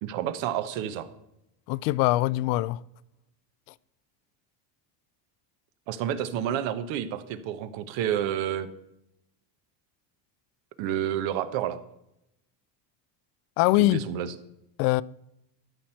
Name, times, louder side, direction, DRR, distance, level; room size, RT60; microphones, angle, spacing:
voice 1, 0.0-1.1 5.9-8.7 10.8-11.8 13.7-14.3, right 10 dB, 65° right, 1.1 m, -29 dB
voice 2, 1.7-2.8 13.6-14.0 14.8-15.0, left 18 dB, 80° left, 0.6 m, -22 dB
12.5 x 4.5 x 7.6 m
cardioid pair, 130°, 49 cm